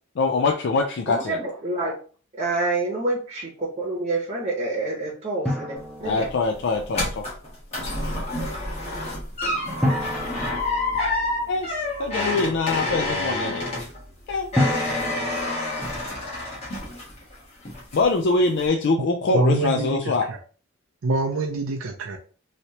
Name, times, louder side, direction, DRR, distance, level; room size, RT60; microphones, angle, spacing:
voice 1, 0.2-1.4 6.0-7.3 11.5-13.6 14.3-14.5 17.9-20.3, left 3 dB, 55° left, 3 dB, 0.4 m, -23 dB
voice 2, 1.1-1.9 2.3-6.2 7.8-8.2, right 2 dB, 30° right, -4 dB, 0.8 m, -28 dB
Drum, 5.4-6.9 9.8-11.6 14.6-16.2, left 1 dB, ahead, 0.6 m, -29 dB
sound 1, 5.8-17.3 17.7-18.2 18.6-18.7, left 2 dB, 30° left, 1.2 m, -28 dB
voice 3, 19.3-20.0 20.3-20.4 21.0-22.2, right 2 dB, 80° right, 2 dB, 0.5 m, -24 dB
3.2 x 2.8 x 2.8 m, 0.40 s
head